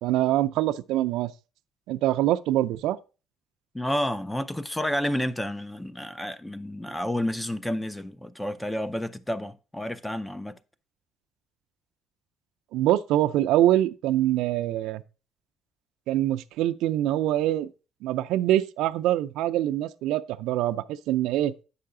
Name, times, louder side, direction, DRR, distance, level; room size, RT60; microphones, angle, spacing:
voice 1, 0.0-1.3 1.9-3.0 12.7-15.0 16.1-17.7 18.0-21.5, right 13 dB, 75° right, 0.4 m, -24 dB
voice 2, 3.7-10.6, left 1 dB, 5° left, 0.4 m, -30 dB
8.5 x 5.6 x 3.7 m
cardioid pair, 160°, 0 cm